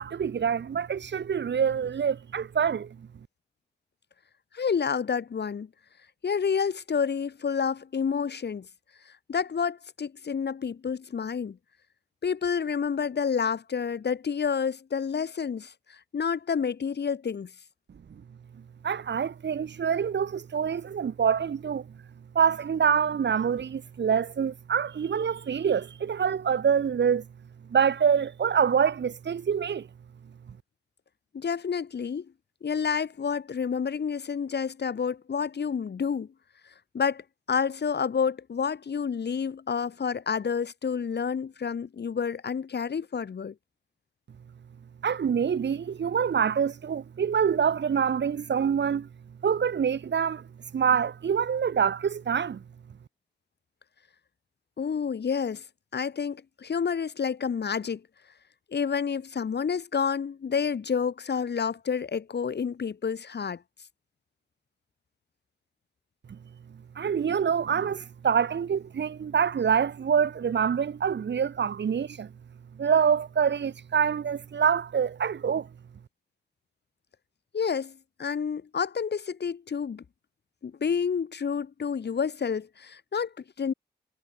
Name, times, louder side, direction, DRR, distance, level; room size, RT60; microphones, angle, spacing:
voice 1, 0.0-2.9 18.8-21.8 22.4-27.2 27.7-29.9 45.0-49.1 49.4-50.4 50.7-52.6 67.0-72.3 72.8-75.7, right 7 dB, 80° right, 2.0 m, -25 dB
voice 2, 4.5-5.7 6.2-8.7 9.1-11.6 12.2-17.5 31.3-32.3 32.6-36.3 36.9-43.5 54.8-55.6 55.9-58.0 58.7-63.6 77.5-80.0 80.6-83.7, left 6 dB, 70° left, 2.1 m, -29 dB
cardioid pair, 75°, 18 cm